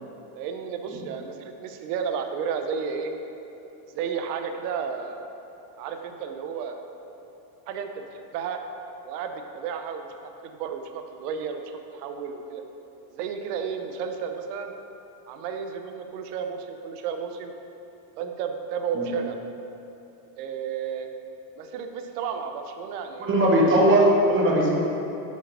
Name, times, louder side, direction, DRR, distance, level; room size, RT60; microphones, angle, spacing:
voice 1, 0.3-3.1 3.9-5.3 5.8-6.8 7.7-8.6 9.0-10.1 10.4-11.6 11.9-12.6 13.1-14.7 15.3-17.5 18.2-19.4 20.4-21.1 21.6-23.3, right 6 dB, 80° right, 6 dB, 0.8 m, -32 dB
voice 2, 23.2-24.8, right 1 dB, 25° right, -2 dB, 1.0 m, -19 dB
5.7 x 4.9 x 5.5 m, 3.0 s
cardioid pair, 155°, 46 cm